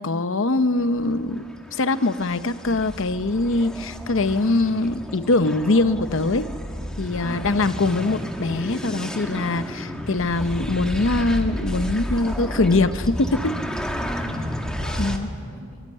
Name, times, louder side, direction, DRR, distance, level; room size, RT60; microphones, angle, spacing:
voice 1, 0.0-1.5 1.7-6.5 7.0-13.6 15.0-15.3, left 2 dB, 60° left, 13 dB, 0.8 m, -22 dB
sound 1, 0.8-15.2, equal, 5° left, 1.3 m, -32 dB
voice 2, 7.2-7.8 13.9-15.8, equal, 40° left, 4 dB, 3.2 m, -40 dB
22.0 x 18.0 x 9.4 m, 2.3 s
head